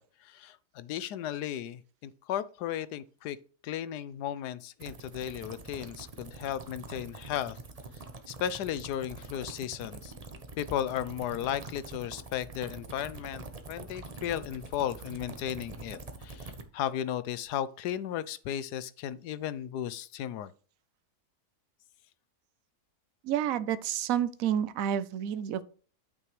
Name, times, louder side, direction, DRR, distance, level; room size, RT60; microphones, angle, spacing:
voice 1, 0.0-3.4 3.6-7.6 8.3-10.1 10.6-20.5, left 10 dB, 90° left, 1.2 m, -35 dB
sound 1, 4.8-16.6, right 3 dB, 30° right, 0.9 m, -45 dB
voice 2, 23.2-25.6, right 9 dB, 65° right, 1.0 m, -29 dB
8.9 x 6.8 x 3.1 m
omnidirectional pair, 1.7 m